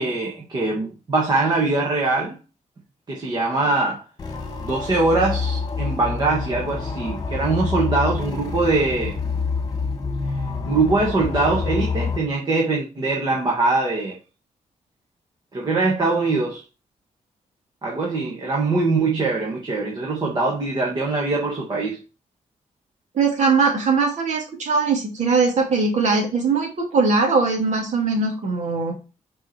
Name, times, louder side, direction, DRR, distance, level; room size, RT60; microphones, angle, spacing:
voice 1, 0.0-2.4 3.1-4.0 4.6-9.2 10.7-14.2 15.5-16.6 17.8-22.0, right 3 dB, 35° right, 2.0 m, -22 dB
sound 1, 4.2-12.2, left 5 dB, 30° left, 1.9 m, -27 dB
voice 2, 23.1-28.9, right 4 dB, 65° right, 2.6 m, -20 dB
8.8 x 4.9 x 4.6 m
wide cardioid pair, 170°, 13 cm